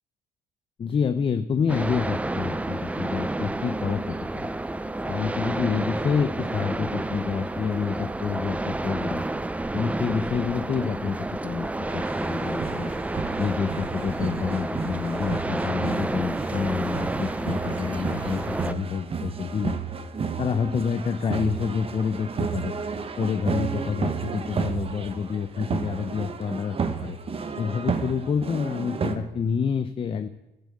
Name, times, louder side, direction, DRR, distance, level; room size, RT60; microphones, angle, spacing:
voice 1, 0.8-4.5 5.1-9.3 9.7-12.9 13.4-19.8 20.4-22.7 23.2-27.2 27.6-30.3, left 6 dB, 30° left, 10 dB, 0.7 m, -28 dB
sound 1, 1.7-18.7, right 2 dB, 10° right, 0.5 m, -30 dB
sound 2, 11.9-29.2, right 6 dB, 35° right, 1.3 m, -32 dB
13.5 x 11.0 x 8.5 m, 0.98 s
cardioid pair, 110°, 17 cm